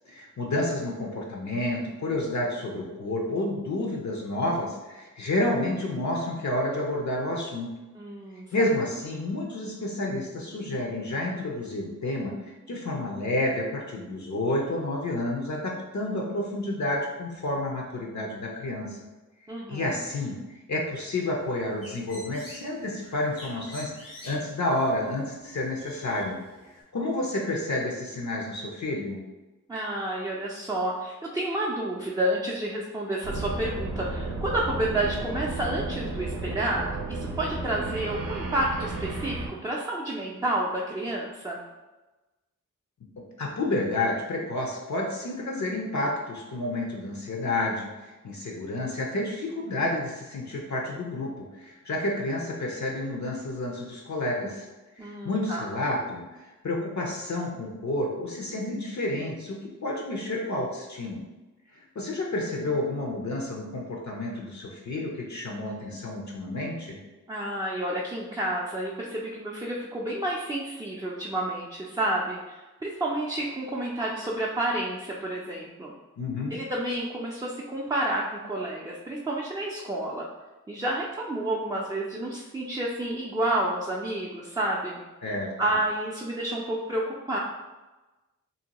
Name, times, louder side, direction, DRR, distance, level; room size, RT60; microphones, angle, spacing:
voice 1, 0.1-7.7 8.5-19.0 19.7-20.4 20.7-26.4 26.9-29.2 43.4-54.7 55.0-61.2 61.7-67.0 76.2-76.6 85.2-85.5, left 1 dB, 60° left, -1 dB, 0.6 m, -30 dB
voice 2, 8.0-8.7 19.5-20.0 29.7-41.6 55.0-55.7 67.3-75.9 76.5-80.3 80.7-85.0 85.6-87.4, right 1 dB, 10° right, -3 dB, 0.4 m, -30 dB
Bird, 21.4-26.8, left 1 dB, 80° left, 0.9 m, -47 dB
sound 1, 33.2-39.5, right 2 dB, 80° right, 0.6 m, -33 dB
2.7 x 2.1 x 2.9 m, 1.1 s
cardioid pair, 45°, 33 cm